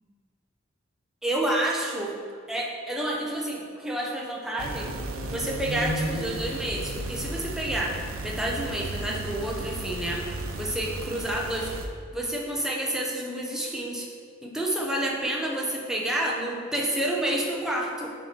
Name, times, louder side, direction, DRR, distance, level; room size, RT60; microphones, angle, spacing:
voice 1, 1.2-2.1 2.5-4.9 5.3-7.9 8.2-10.2 10.6-11.7 12.1-14.1 14.4-18.1, right 1 dB, ahead, -3 dB, 0.7 m, -29 dB
sound 1, 4.6-11.9, right 1 dB, 90° right, 0.7 m, -34 dB
8.1 x 4.3 x 4.5 m, 2.2 s
head